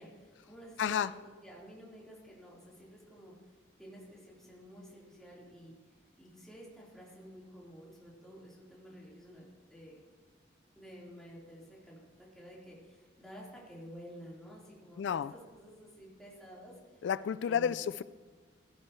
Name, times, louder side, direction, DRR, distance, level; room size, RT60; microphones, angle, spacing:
voice 1, 0.0-3.3 3.8-5.7 6.2-9.4 9.7-10.0 10.7-17.0 17.4-17.8, equal, 5° left, -6 dB, 4.1 m, -52 dB
voice 2, 0.8-1.1 15.0-15.3 17.0-18.0, left 8 dB, 80° left, 16 dB, 0.3 m, -31 dB
15.5 x 15.5 x 3.2 m, 1.4 s
head